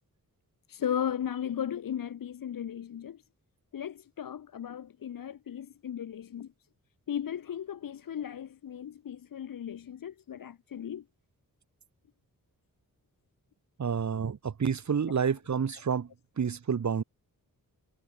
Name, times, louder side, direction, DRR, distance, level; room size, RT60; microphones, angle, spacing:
voice 1, 0.7-3.2 3.7-6.5 7.1-11.0, left 9 dB, 70° left, 0.8 m, -36 dB
voice 2, 13.8-16.1 16.4-17.0, right 6 dB, 55° right, 1.3 m, -29 dB
wide cardioid pair, 135°, 35 cm